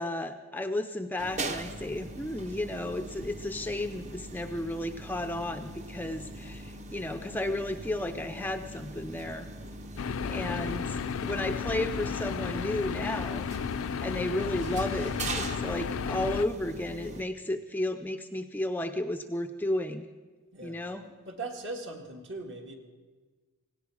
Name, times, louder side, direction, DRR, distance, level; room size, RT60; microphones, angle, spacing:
voice 1, 0.0-9.5 10.2-13.5 14.0-20.1 20.6-21.0, left 1 dB, 10° left, 7 dB, 0.4 m, -33 dB
sound 1, 1.2-17.2, right 2 dB, 30° right, 0.8 m, -41 dB
sound 2, 10.0-16.5, left 6 dB, 70° left, 0.4 m, -33 dB
voice 2, 20.5-20.9 21.2-22.8, right 2 dB, 55° right, 3 dB, 1.8 m, -39 dB
17.5 x 17.0 x 4.8 m, 1.4 s
head